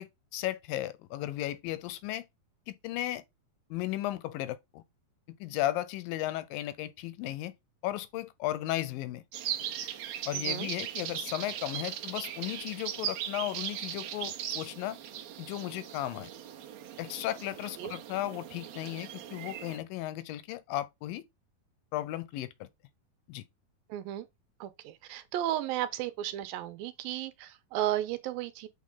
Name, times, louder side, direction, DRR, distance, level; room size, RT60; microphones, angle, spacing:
voice 1, 0.0-2.3 2.7-3.2 3.7-4.8 5.4-7.5 7.8-9.2 10.3-15.0 15.4-16.3 17.0-21.2 21.9-22.7 23.3-23.4, left 14 dB, 80° left, 2.2 m, -35 dB
sound 1, 9.3-19.8, right 10 dB, 70° right, 1.6 m, -38 dB
voice 2, 10.3-10.7 17.8-17.9 23.9-24.3 24.6-28.7, right 13 dB, 90° right, 2.5 m, -34 dB
7.3 x 4.4 x 3.6 m
omnidirectional pair, 4.2 m